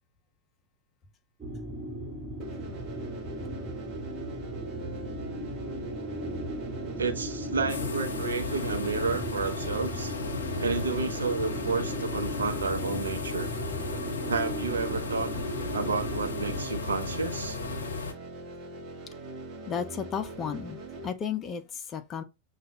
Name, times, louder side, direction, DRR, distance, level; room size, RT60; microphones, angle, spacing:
sound 1, 1.4-16.6, right 1 dB, 20° right, 1.9 m, -37 dB
sound 2, 2.4-21.1, right 2 dB, 35° right, 1.0 m, -41 dB
voice 1, 7.0-10.1 10.6-13.5 14.3-15.3 15.7-17.6, right 4 dB, 70° right, 0.7 m, -31 dB
sound 3, 7.7-18.1, left 4 dB, 70° left, 0.7 m, -35 dB
voice 2, 19.7-22.2, left 7 dB, 25° left, 0.7 m, -34 dB
6.1 x 2.4 x 2.9 m
figure-of-eight pair, 90°, 0 cm